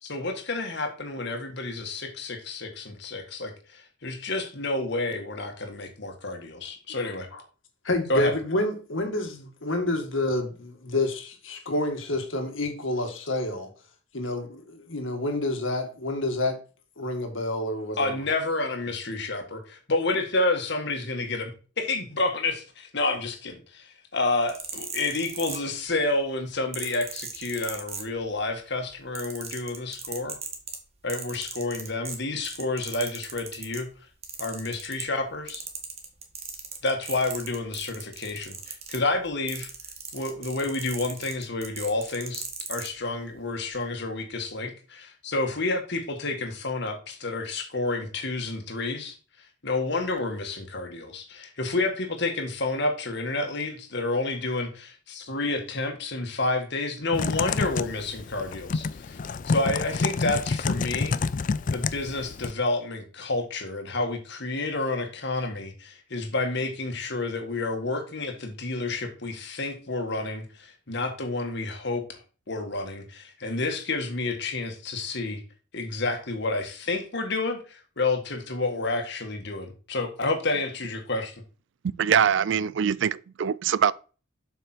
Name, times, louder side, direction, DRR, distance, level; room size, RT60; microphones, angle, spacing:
voice 1, 0.0-7.3 8.1-8.3 18.0-21.5 21.8-30.4 31.0-33.9 34.4-35.6 36.8-39.7 40.1-49.2 49.6-59.2 59.5-61.2 61.7-72.1 72.5-75.4 75.7-81.3, left 2 dB, 55° left, 1.9 m, -29 dB
voice 2, 7.0-7.4 7.8-13.7 14.1-16.6 17.0-18.2, left 2 dB, 75° left, 2.0 m, -28 dB
sound 1, 24.3-26.0 26.7-28.5 28.8-33.9 34.2-35.2 35.5-42.9 43.7-43.8, right 6 dB, 30° right, 1.6 m, -37 dB
Typing, 57.1-62.5, left 4 dB, 40° left, 0.4 m, -28 dB
voice 3, 82.0-83.9, right 8 dB, 60° right, 0.4 m, -23 dB
7.8 x 5.8 x 4.5 m
head